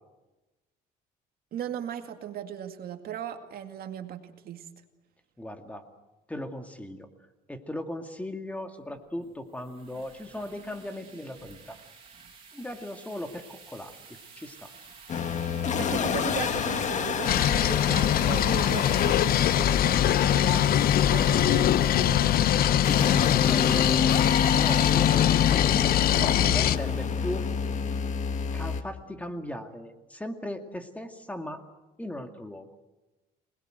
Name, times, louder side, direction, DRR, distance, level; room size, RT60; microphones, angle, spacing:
voice 1, 1.5-4.7 15.7-22.4 26.2-26.6, right 9 dB, 65° right, 6 dB, 2.2 m, -37 dB
voice 2, 5.4-5.8 6.3-7.1 7.5-11.8 12.5-14.0 14.4-14.7 22.9-24.1 24.5-25.6 26.0-27.5 28.5-31.6 32.0-32.7, left 1 dB, 10° left, 6 dB, 2.3 m, -38 dB
sound 1, 8.9-27.1, right 5 dB, 30° right, 6.7 m, -52 dB
sound 2, 15.1-28.8, left 6 dB, 45° left, 1.7 m, -29 dB
sound 3, 17.3-26.8, left 11 dB, 60° left, 0.7 m, -22 dB
26.5 x 20.5 x 7.9 m, 1.1 s
cardioid pair, 110°, 17 cm